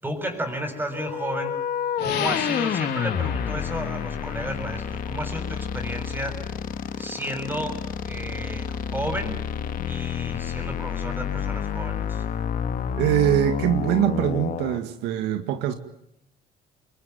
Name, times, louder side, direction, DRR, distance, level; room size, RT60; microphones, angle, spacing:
voice 1, 0.0-1.5 2.0-6.4 7.0-9.4 9.9-12.2, right 1 dB, 10° right, 6.8 m, -33 dB
sound 1, 0.9-14.8, left 8 dB, 55° left, 2.0 m, -29 dB
sound 2, 2.0-12.3, left 9 dB, 80° left, 4.4 m, -39 dB
voice 2, 13.0-15.7, right 11 dB, 90° right, 2.1 m, -23 dB
27.5 x 22.5 x 9.4 m
cardioid pair, 110°, 17 cm